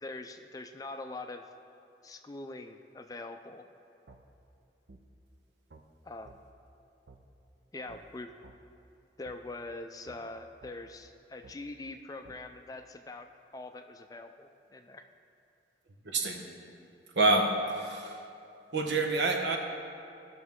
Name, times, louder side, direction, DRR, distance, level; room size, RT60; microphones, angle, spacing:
voice 1, 0.0-1.5 2.0-3.6 6.0-6.4 7.7-8.3 9.2-15.1, left 2 dB, 20° left, 7 dB, 0.4 m, -43 dB
sound 1, 4.1-4.2 4.9-5.0 5.7-5.8 6.2-6.4 7.1-7.2 7.9-8.0 8.4-8.6 9.2-9.4 10.1-10.2 10.6-10.8 11.4-11.6 12.2-12.4, right 3 dB, 65° right, 0.7 m, -53 dB
voice 2, 16.0-16.5 17.1-18.3 18.7-19.6, right 2 dB, 80° right, 3 dB, 1.1 m, -27 dB
16.0 x 6.1 x 3.6 m, 2.5 s
head